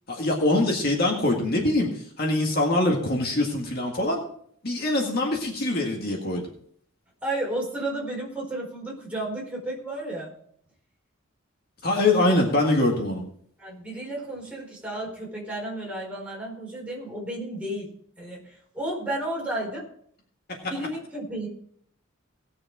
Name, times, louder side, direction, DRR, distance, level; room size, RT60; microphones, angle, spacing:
voice 1, 0.1-1.9 2.2-4.2 4.6-6.4 11.8-13.2, left 2 dB, 50° left, 0 dB, 1.9 m, -23 dB
voice 2, 7.2-10.3 13.6-17.9 18.2-19.8 20.6-21.5, right 1 dB, 5° right, -3 dB, 4.3 m, -32 dB
18.5 x 6.6 x 4.8 m, 0.63 s
head